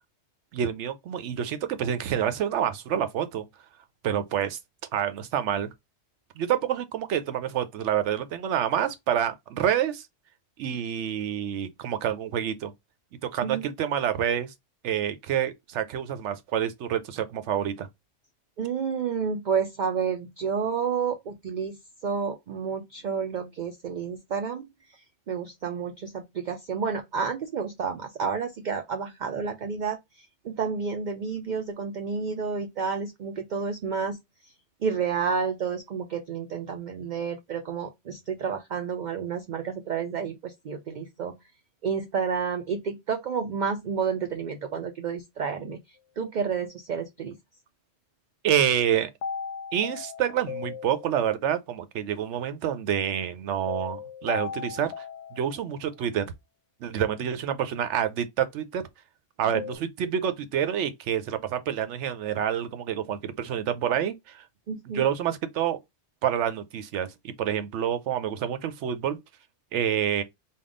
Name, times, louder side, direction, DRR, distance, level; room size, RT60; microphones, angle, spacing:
voice 1, 0.5-3.4 4.0-4.6 4.9-5.7 6.4-10.0 10.6-12.7 13.3-14.5 14.8-17.9 48.4-49.1 49.7-55.0 55.3-56.3 56.8-58.8 59.4-64.4 64.9-65.8 66.2-69.2 69.7-70.2, right 9 dB, 85° right, 0.9 m, -28 dB
voice 2, 18.6-34.2 34.4-34.5 34.8-41.3 41.8-47.4 64.7-65.0, right 6 dB, 60° right, 0.5 m, -30 dB
sound 1, 49.2-51.5 53.7-56.0 59.5-59.8, left 6 dB, 75° left, 0.9 m, -37 dB
3.6 x 2.3 x 3.6 m
omnidirectional pair, 1.2 m